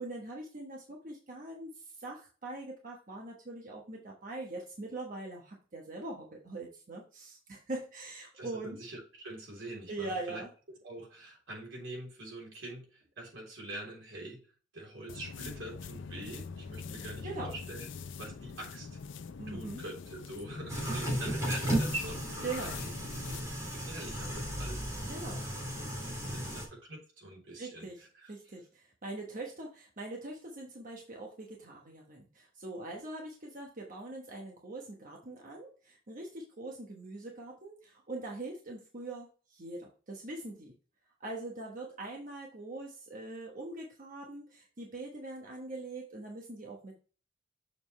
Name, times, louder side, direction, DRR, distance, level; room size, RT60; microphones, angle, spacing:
voice 1, 0.0-8.8 9.9-10.5 17.2-17.5 19.4-19.8 22.4-22.8 25.1-25.5 27.6-40.7 41.2-47.0, right 2 dB, 45° right, 0 dB, 1.1 m, -42 dB
voice 2, 8.3-10.4 10.8-14.5 14.7-19.0 19.5-22.9 23.2-25.1 25.4-25.5 25.9-28.3, right 1 dB, 85° right, -1 dB, 3.4 m, -44 dB
sound 1, 15.1-23.5, left 5 dB, 75° left, 0.5 m, -44 dB
sound 2, 20.7-26.6, right 1 dB, 15° right, 2.4 m, -35 dB
6.8 x 5.2 x 3.1 m, 0.38 s
head